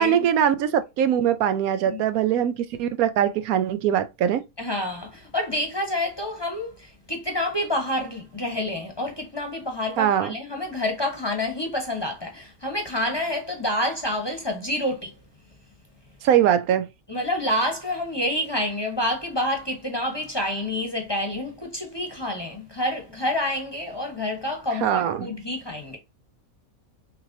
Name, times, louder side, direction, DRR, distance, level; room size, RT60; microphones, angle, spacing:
voice 1, 0.0-4.4 10.0-10.4 16.2-16.9 24.8-25.3, right 9 dB, 80° right, 1.0 m, -22 dB
voice 2, 4.6-15.1 17.1-26.0, left 1 dB, 20° left, 1.0 m, -28 dB
6.6 x 3.0 x 2.7 m
omnidirectional pair, 1.5 m